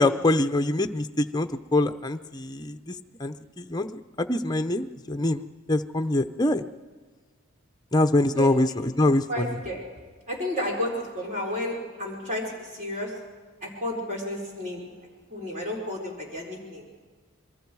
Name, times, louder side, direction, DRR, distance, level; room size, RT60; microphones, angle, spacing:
voice 1, 0.0-6.6 7.9-9.6, left 2 dB, 20° left, 7 dB, 0.7 m, -25 dB
voice 2, 9.3-9.8 10.3-10.9 11.1-13.1 13.6-14.8 15.3-16.8, left 1 dB, 35° right, -1 dB, 5.0 m, -31 dB
27.0 x 22.5 x 4.8 m, 1.4 s
head